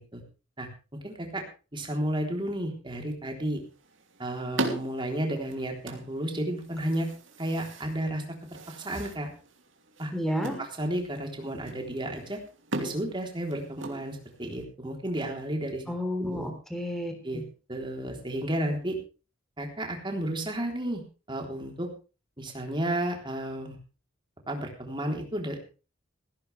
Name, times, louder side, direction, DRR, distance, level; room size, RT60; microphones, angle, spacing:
voice 1, 0.6-1.4 1.7-3.6 4.2-7.1 7.4-9.3 10.0-10.1 10.6-12.4 12.8-15.8 16.2-16.5 17.2-17.4 17.7-19.0 19.6-21.0 21.3-21.9 22.4-23.8 24.5-25.6, right 1 dB, 25° right, 2 dB, 3.7 m, -32 dB
sound 1, 3.5-14.6, right 2 dB, 75° right, 2.9 m, -39 dB
voice 2, 10.1-10.6 15.9-17.4, equal, ahead, 4 dB, 3.5 m, -31 dB
16.5 x 15.5 x 3.4 m, 0.33 s
head